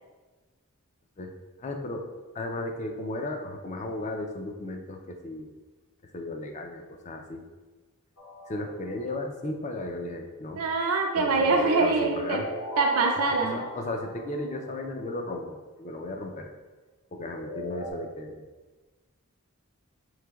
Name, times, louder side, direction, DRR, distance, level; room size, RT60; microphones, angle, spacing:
voice 1, 1.6-2.0 2.3-5.5 6.0-7.4 8.5-10.6 11.1-12.5 13.4-16.5 17.1-18.4, left 2 dB, 30° left, 3 dB, 0.4 m, -35 dB
sound 1, 8.2-9.3 11.5-14.8 17.2-17.9, right 1 dB, 75° left, 0.8 m, -39 dB
voice 2, 10.6-12.4 12.8-13.6, right 3 dB, 75° right, 2 dB, 0.4 m, -24 dB
5.8 x 3.2 x 2.3 m, 1.3 s
head